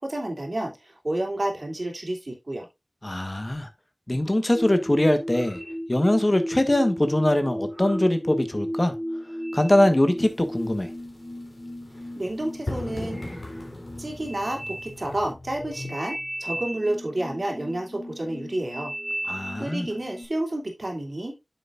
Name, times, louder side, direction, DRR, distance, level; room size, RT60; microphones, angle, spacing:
voice 1, 0.0-2.7 12.2-13.3 14.0-18.9 19.6-21.3, right 1 dB, 60° right, 2.9 m, -30 dB
voice 2, 3.0-3.7 4.1-5.6 5.9-8.9 9.5-10.9 19.3-19.9, left 1 dB, 35° left, 1.3 m, -22 dB
sound 1, 4.5-20.3, equal, 5° left, 4.9 m, -35 dB
sound 2, 10.2-15.3, left 1 dB, 50° left, 3.3 m, -39 dB
8.9 x 7.0 x 2.5 m
wide cardioid pair, 45°, 0 cm